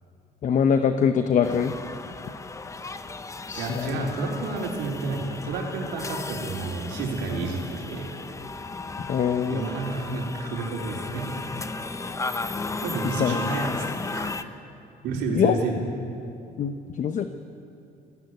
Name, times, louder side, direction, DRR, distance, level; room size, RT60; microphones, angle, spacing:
voice 1, 0.4-1.7 3.5-4.1 9.1-9.6 13.2-13.4 15.3-15.6 16.6-17.2, left 7 dB, 45° left, 8 dB, 0.9 m, -23 dB
sound 1, 1.4-14.4, left 3 dB, 20° left, 0.9 m, -35 dB
voice 2, 3.6-8.1 9.5-11.3 12.8-14.3 15.0-15.8, right 3 dB, 85° right, -1 dB, 3.8 m, -30 dB
19.0 x 17.0 x 9.5 m, 2.7 s
cardioid pair, 110°, 17 cm